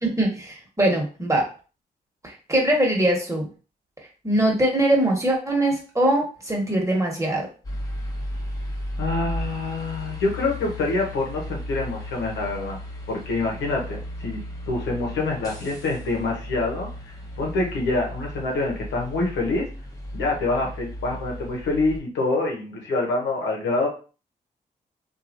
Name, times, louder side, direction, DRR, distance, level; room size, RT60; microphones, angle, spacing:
voice 1, 0.0-1.5 2.2-3.5 4.2-7.5, right 1 dB, 15° right, -1 dB, 1.3 m, -22 dB
sound 1, 7.6-22.0, left 1 dB, 20° left, 0.9 m, -35 dB
voice 2, 9.0-12.8 13.1-14.4 14.7-16.9 17.4-19.7 20.1-23.9, left 2 dB, 90° left, -1 dB, 0.9 m, -26 dB
2.9 x 2.5 x 2.5 m, 0.36 s
supercardioid pair, 50°, 18 cm